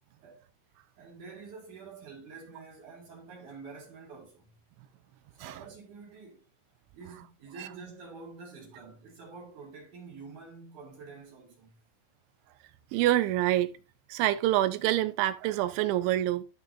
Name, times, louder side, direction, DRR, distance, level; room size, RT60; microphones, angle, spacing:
voice 1, 0.9-4.6 5.4-6.5 6.9-11.8, right 4 dB, 50° right, 3.1 m, -48 dB
voice 2, 12.9-13.8 14.1-16.4, right 14 dB, 80° right, 2.8 m, -26 dB
13.0 x 5.7 x 2.7 m
omnidirectional pair, 5.7 m